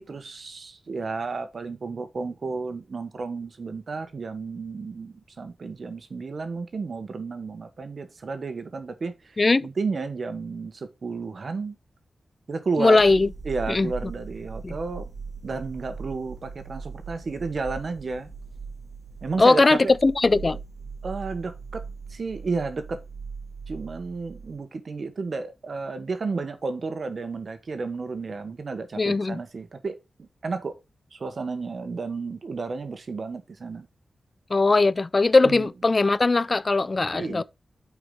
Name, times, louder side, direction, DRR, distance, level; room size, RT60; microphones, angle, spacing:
voice 1, 0.0-11.7 12.5-13.0 13.4-15.1 15.4-18.3 19.2-20.0 21.0-21.8 22.1-23.0 23.7-30.8 31.1-33.9 35.4-35.7 37.1-37.4, right 4 dB, 55° right, 1.2 m, -32 dB
voice 2, 9.4-9.7 12.8-13.3 13.7-13.9 14.6-14.8 19.4-20.6 29.0-29.4 34.5-37.4, left 3 dB, 35° left, 0.3 m, -20 dB
sound 1, 13.0-24.6, right 5 dB, 15° right, 2.5 m, -40 dB
8.8 x 4.8 x 3.8 m
wide cardioid pair, 115°, 0 cm